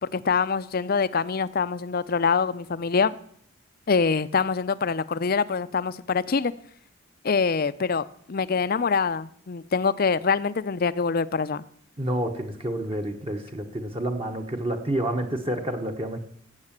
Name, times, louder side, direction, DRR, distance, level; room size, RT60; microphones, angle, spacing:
voice 1, 0.0-3.2 3.9-6.5 7.2-11.6, left 5 dB, 45° left, 15 dB, 0.5 m, -25 dB
voice 2, 12.0-16.2, right 1 dB, 30° right, 4 dB, 1.2 m, -29 dB
16.0 x 7.5 x 7.4 m, 0.65 s
head